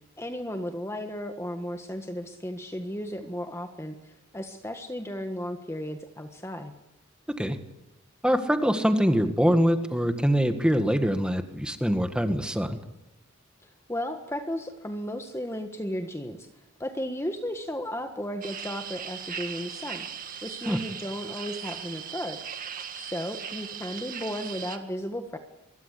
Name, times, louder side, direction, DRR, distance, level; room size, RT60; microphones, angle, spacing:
voice 1, 0.2-6.7 13.6-16.5 16.8-20.1 20.4-22.4 22.9-25.4, equal, 15° left, 6 dB, 1.5 m, -34 dB
voice 2, 8.2-12.8 20.7-20.8, equal, 5° right, 7 dB, 1.8 m, -24 dB
sound 1, 18.4-24.8, right 8 dB, 40° right, 2.0 m, -38 dB
24.5 x 22.0 x 8.5 m, 0.94 s
head